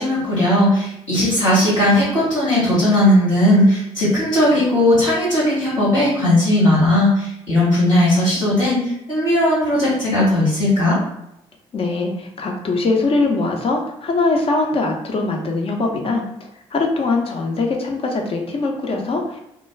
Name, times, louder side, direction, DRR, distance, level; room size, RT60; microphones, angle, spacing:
voice 1, 0.0-11.0, left 1 dB, 90° left, -10 dB, 1.1 m, -17 dB
voice 2, 11.7-16.2 16.7-19.4, left 3 dB, 35° left, 1 dB, 0.6 m, -21 dB
2.3 x 2.2 x 3.1 m, 0.83 s
figure-of-eight pair, 40°, 16 cm